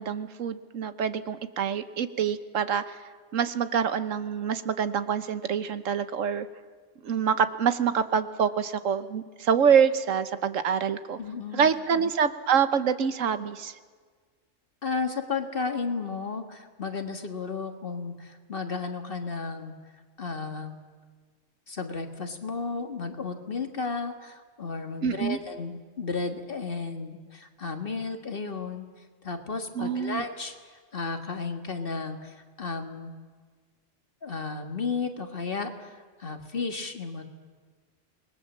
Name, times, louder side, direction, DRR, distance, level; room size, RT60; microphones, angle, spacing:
voice 1, 0.0-3.0 3.3-6.5 7.0-11.2 11.5-13.7 25.0-25.4 29.7-30.2, right 7 dB, 80° right, 12 dB, 1.4 m, -26 dB
voice 2, 11.2-11.7 14.8-19.7 20.2-20.8 21.7-28.8 29.2-30.5 30.9-33.1 34.2-37.2, left 4 dB, 45° left, 6 dB, 1.9 m, -33 dB
27.0 x 20.5 x 7.3 m, 1.5 s
omnidirectional pair, 1.3 m